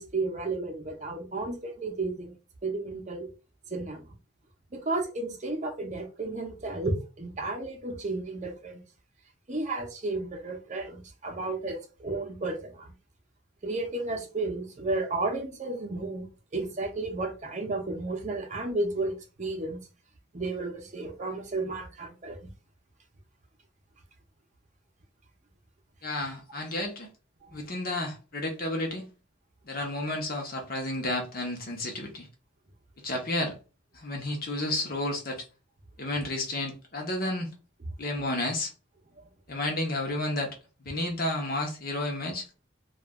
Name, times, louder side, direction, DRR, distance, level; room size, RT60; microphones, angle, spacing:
voice 1, 0.0-2.3 2.6-3.3 3.7-4.0 4.7-8.8 9.5-12.9 13.6-19.8 20.3-22.4, right 2 dB, 35° right, 0.7 m, -33 dB
voice 2, 26.0-27.1 27.5-29.1 29.7-32.3 33.0-33.5 33.9-35.4 36.0-37.5 38.0-38.7 39.5-40.5 40.8-42.4, left 1 dB, 45° left, 0.9 m, -31 dB
3.1 x 2.4 x 2.3 m
head